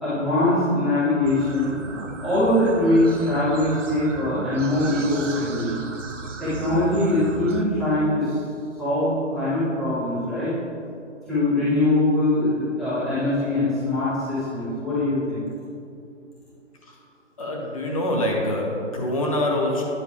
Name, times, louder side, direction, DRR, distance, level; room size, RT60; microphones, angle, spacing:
voice 1, 0.0-1.7 2.2-5.7 6.4-8.4 8.8-10.5 11.3-15.4, left 1 dB, ahead, -17 dB, 0.7 m, -22 dB
sound 1, 1.2-7.6, right 4 dB, 75° right, 0.8 m, -35 dB
voice 2, 17.4-19.8, left 1 dB, 30° left, -1 dB, 0.8 m, -25 dB
9.7 x 6.2 x 3.4 m, 2.5 s
figure-of-eight pair, 150°, 37 cm